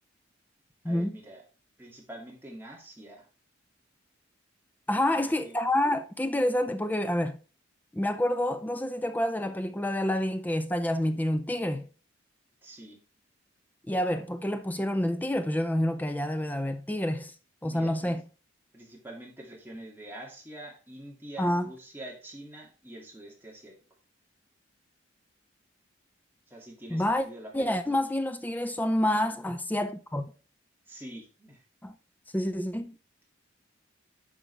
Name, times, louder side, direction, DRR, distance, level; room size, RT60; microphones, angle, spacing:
voice 1, 0.8-1.4 1.8-3.3 5.2-5.6 12.6-13.0 17.6-18.2 18.7-23.7 26.5-28.0 30.9-31.6, right 1 dB, 10° right, 2.3 m, -45 dB
voice 2, 4.9-7.4 7.9-11.9 13.9-17.3 17.6-18.2 21.4-21.7 26.9-27.3 27.5-30.3 31.8-31.9 32.3-33.0, left 1 dB, 10° left, 0.4 m, -28 dB
10.0 x 5.2 x 3.4 m
head